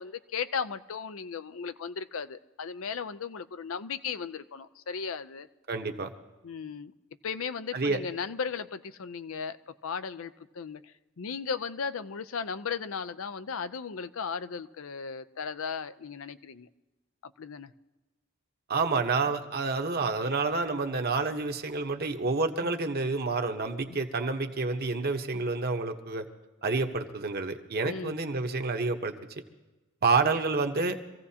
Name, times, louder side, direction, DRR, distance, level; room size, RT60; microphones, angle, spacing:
voice 1, 0.0-5.5 6.4-6.9 7.2-9.6 9.8-10.8 11.2-16.7 17.2-17.7 22.6-22.7 23.9-24.1 25.3-25.4 27.8-28.2 30.2-30.4, left 6 dB, 75° left, 13 dB, 0.5 m, -36 dB
voice 2, 5.7-6.1 7.7-8.0 18.7-26.2 26.6-29.1 30.0-31.0, right 3 dB, 50° right, 5 dB, 1.0 m, -28 dB
25.5 x 15.5 x 2.8 m, 1.1 s
head